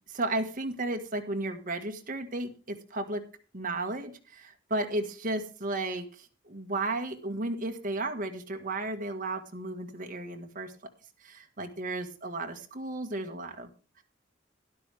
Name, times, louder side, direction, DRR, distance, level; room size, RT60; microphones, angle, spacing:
voice 1, 0.1-3.2 3.5-10.7 11.2-13.7, right 2 dB, 45° right, 5 dB, 1.8 m, -34 dB
12.5 x 12.0 x 3.5 m, 0.36 s
head